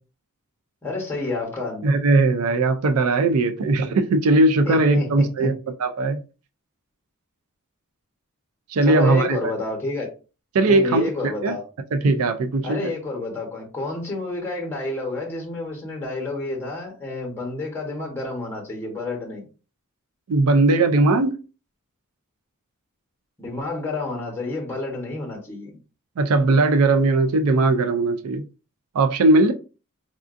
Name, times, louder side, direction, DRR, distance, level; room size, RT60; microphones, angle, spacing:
voice 1, 0.8-1.9 4.6-5.5 8.8-10.1 10.6-11.6 12.6-19.5 23.4-25.8, left 2 dB, 10° left, 1.0 m, -29 dB
voice 2, 1.8-5.5 5.8-6.2 8.7-9.5 10.5-11.1 11.4-11.6 11.9-12.9 20.3-21.3 26.2-28.4 28.9-29.5, right 2 dB, 75° right, 0.4 m, -19 dB
3.5 x 2.5 x 2.5 m
head